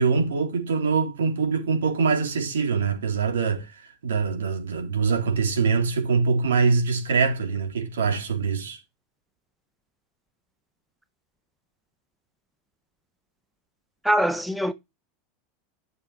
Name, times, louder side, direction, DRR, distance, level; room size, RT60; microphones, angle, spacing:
voice 1, 0.0-8.8, right 5 dB, 75° right, 3.9 m, -24 dB
voice 2, 14.0-14.7, equal, 5° right, 1.2 m, -22 dB
13.0 x 6.9 x 4.6 m
figure-of-eight pair, 85°, 0 cm